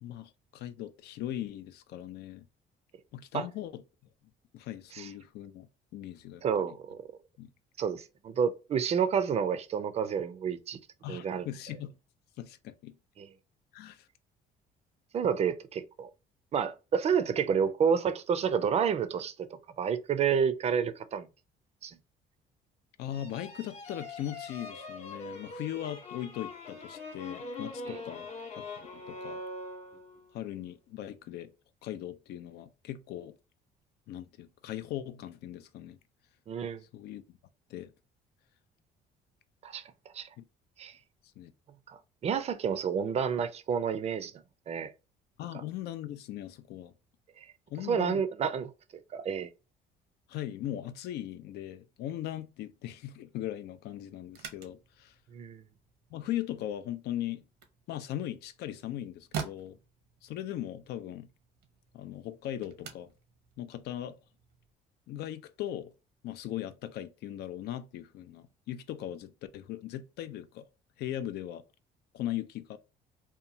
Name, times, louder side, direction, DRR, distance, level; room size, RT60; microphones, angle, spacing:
voice 1, 0.0-2.4 3.1-3.8 4.5-5.7 5.9-6.7 7.4-7.5 11.0-12.0 12.4-12.9 13.7-14.1 23.0-28.3 28.6-28.7 28.9-29.4 30.3-31.5 31.8-33.3 34.1-36.0 36.9-37.4 37.7-37.9 40.4-40.5 41.4-41.5 45.4-46.9 47.7-48.2 50.3-55.1 56.1-57.4 57.9-59.8 60.2-61.3 61.9-63.1 63.6-64.1 65.1-65.9 66.2-70.6 71.0-71.6 72.1-72.8, left 12 dB, 75° left, 0.4 m, -39 dB
voice 2, 6.4-7.0 7.8-10.8 11.1-11.5 13.2-13.3 15.1-16.1 16.5-19.5 19.8-21.3 21.8-22.0 27.9-28.0 36.5-36.8 39.6-39.8 40.1-40.3 40.8-40.9 41.9-44.9 45.5-45.6 47.4-47.5 47.9-48.7 49.1-49.5 55.3-55.6, right 7 dB, 40° right, 0.4 m, -30 dB
sound 1, 23.1-30.3, left 3 dB, 40° left, 0.7 m, -43 dB
sound 2, 54.2-64.7, right 7 dB, 90° right, 0.8 m, -47 dB
2.9 x 2.2 x 2.5 m
cardioid pair, 110°, 17 cm